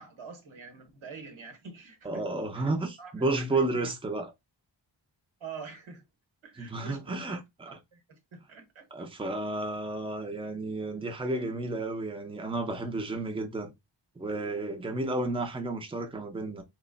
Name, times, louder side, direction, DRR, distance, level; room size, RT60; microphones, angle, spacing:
voice 1, 0.0-2.3 2.5-2.7 3.0-3.9 5.4-6.0 6.4-8.9, right 5 dB, 90° right, 1.1 m, -46 dB
voice 2, 2.0-4.3 6.6-7.7 8.9-13.7 14.2-16.6, right 2 dB, 10° right, 0.5 m, -32 dB
3.0 x 2.1 x 3.7 m
wide cardioid pair, 100°, 46 cm